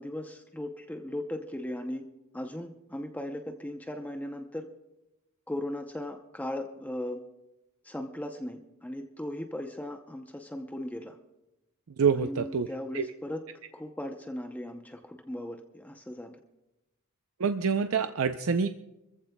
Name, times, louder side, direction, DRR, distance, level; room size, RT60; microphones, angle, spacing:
voice 1, 0.0-2.1 2.3-4.7 5.5-7.2 7.8-11.2 12.2-13.4 13.7-16.4, left 1 dB, 5° left, 4 dB, 0.7 m, -37 dB
voice 2, 12.0-12.7 12.9-13.0 17.4-18.7, right 6 dB, 75° right, 8 dB, 0.5 m, -26 dB
25.0 x 14.5 x 2.3 m, 0.96 s
head